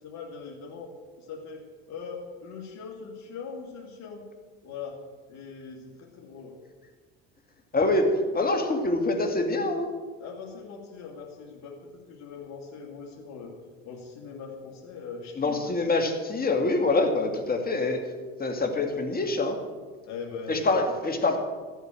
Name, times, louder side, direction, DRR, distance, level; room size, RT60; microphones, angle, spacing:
voice 1, 0.0-4.2 4.6-5.0 5.3-6.6 10.2-13.5 13.8-15.9 20.1-20.6, left 5 dB, 55° left, -1 dB, 2.4 m, -41 dB
voice 2, 7.7-9.9 15.4-18.0 18.4-19.6 20.5-21.4, left 2 dB, 25° left, 5 dB, 2.2 m, -25 dB
14.0 x 8.2 x 7.7 m, 1.5 s
supercardioid pair, 85°, 33 cm